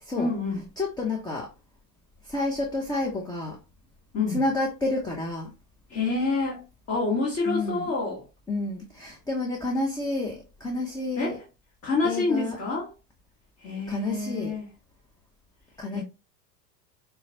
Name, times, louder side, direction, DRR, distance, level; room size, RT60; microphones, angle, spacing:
voice 1, 0.2-0.6 4.1-4.4 5.9-6.6 6.9-8.2 11.2-11.4 11.8-12.9 13.6-14.6 15.9-16.0, left 3 dB, 30° left, 1.5 m, -27 dB
voice 2, 0.8-1.5 2.2-3.6 4.3-5.5 7.5-7.9 8.5-11.4 12.0-12.6 13.9-14.5 15.8-16.0, left 2 dB, 10° left, 0.7 m, -29 dB
5.4 x 2.2 x 2.7 m
hypercardioid pair, 90°, 49 cm